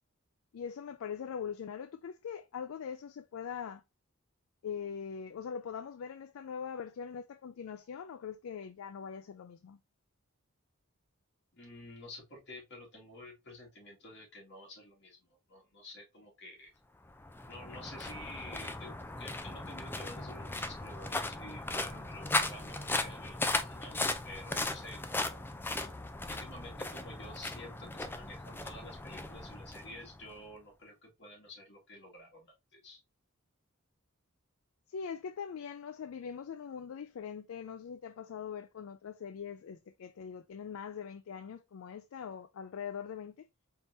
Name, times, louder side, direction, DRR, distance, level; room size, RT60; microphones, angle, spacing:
voice 1, 0.5-3.8 4.6-9.8 34.9-43.5, left 7 dB, 75° left, 0.4 m, -42 dB
voice 2, 11.6-16.7 17.5-25.5 26.3-33.0, left 1 dB, 55° left, 2.1 m, -50 dB
sound 1, 17.0-30.4, left 2 dB, 10° left, 0.4 m, -37 dB
4.3 x 3.6 x 2.7 m
head